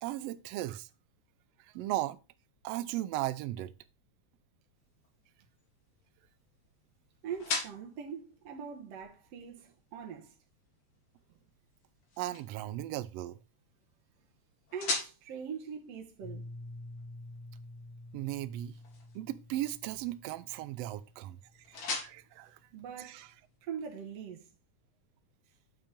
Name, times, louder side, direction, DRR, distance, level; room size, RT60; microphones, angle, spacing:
voice 1, 0.0-0.9 1.6-2.2 2.6-3.7 12.2-13.4 18.1-18.7 19.1-21.4 21.7-22.6 23.0-23.3, right 15 dB, 80° right, 1.4 m, -36 dB
sound 1, 4.7-23.6, left 3 dB, 60° left, 3.1 m, -45 dB
voice 2, 7.2-10.3 14.7-16.5 22.7-23.3 23.6-24.5, right 7 dB, 65° right, 1.9 m, -42 dB
Piano, 16.2-21.8, left 2 dB, 90° left, 2.7 m, -49 dB
8.8 x 3.9 x 5.0 m
omnidirectional pair, 3.4 m